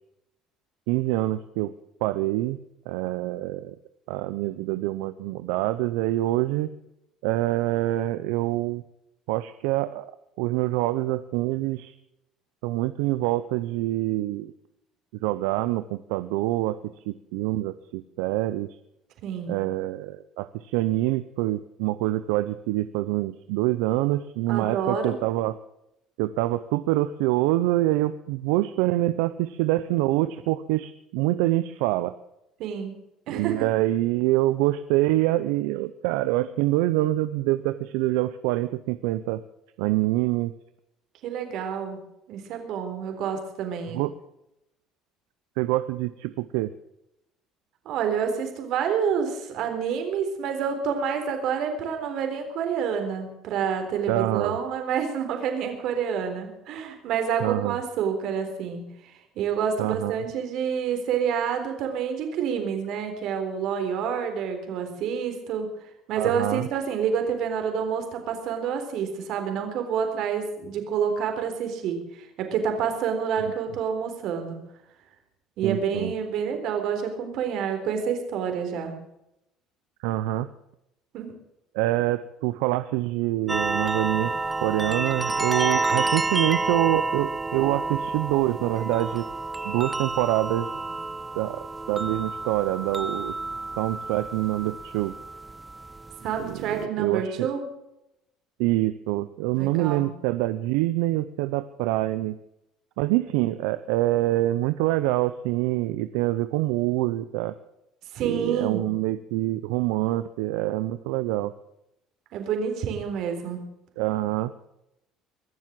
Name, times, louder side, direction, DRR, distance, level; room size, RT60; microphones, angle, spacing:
voice 1, 0.9-1.7 2.0-2.6 2.9-3.7 4.1-6.7 7.2-8.8 9.3-10.1 10.4-11.9 12.6-14.5 15.2-18.8 19.5-25.6 26.2-32.1 33.3-39.4 39.8-40.5 43.9-44.1 45.6-46.7 54.1-54.6 57.4-57.8 59.8-60.2 66.2-66.7 73.4-73.5 75.6-76.1 80.0-80.5 81.7-84.3 84.6-89.3 89.6-90.7 91.4-93.3 93.8-95.1 96.4-97.5 98.6-102.4 103.0-107.5 108.2-111.5 114.0-114.5, right 16 dB, 85° right, 12 dB, 0.6 m, -25 dB
voice 2, 19.2-19.5 24.5-25.1 32.6-33.0 33.3-33.6 41.2-42.0 42.3-44.0 47.9-65.7 66.1-74.6 75.6-78.9 81.1-81.3 96.2-97.6 99.6-100.0 108.1-108.8 112.3-113.6, right 7 dB, 65° right, 6 dB, 3.8 m, -28 dB
sound 1, 83.5-96.8, right 3 dB, 15° right, 0.6 m, -29 dB
22.0 x 7.5 x 7.6 m, 0.85 s
supercardioid pair, 100°, 0 cm